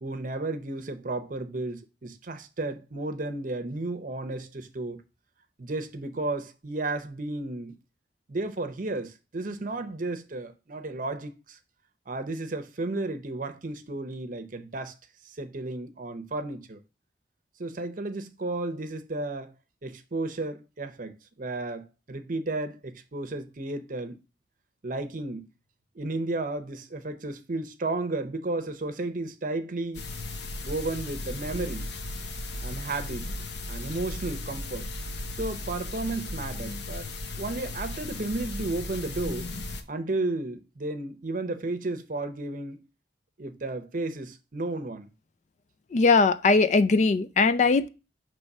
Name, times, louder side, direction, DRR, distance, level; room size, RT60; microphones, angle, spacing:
voice 1, 0.0-5.0 5.6-7.8 8.3-11.6 12.1-14.9 15.2-16.8 17.6-19.5 19.8-24.2 24.8-25.5 25.9-30.0 30.6-31.9 32.6-33.3 33.7-34.9 35.3-37.1 37.4-39.5 39.9-42.8 43.4-45.1, right 2 dB, 50° right, 0.7 m, -33 dB
sound 1, 29.9-39.8, left 2 dB, 70° left, 0.8 m, -36 dB
voice 2, 45.9-47.9, left 4 dB, 40° left, 0.4 m, -20 dB
6.0 x 3.1 x 5.3 m
head